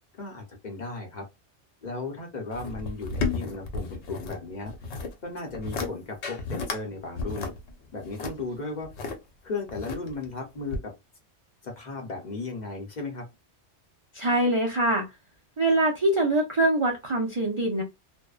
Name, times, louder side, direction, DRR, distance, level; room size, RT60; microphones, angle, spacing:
voice 1, 0.1-1.3 1.8-4.7 5.2-7.5 7.9-8.9 9.4-10.9 11.6-13.3, left 3 dB, 45° left, 0.7 m, -35 dB
sound 1, 2.5-4.4 4.7-5.1 5.5-5.9 6.2-6.8 7.2-9.1 9.7-10.3 10.7-10.8, left 4 dB, 75° left, 0.9 m, -32 dB
voice 2, 14.1-15.1 15.6-17.8, right 1 dB, 50° right, 0.3 m, -23 dB
2.6 x 2.1 x 2.3 m
omnidirectional pair, 1.2 m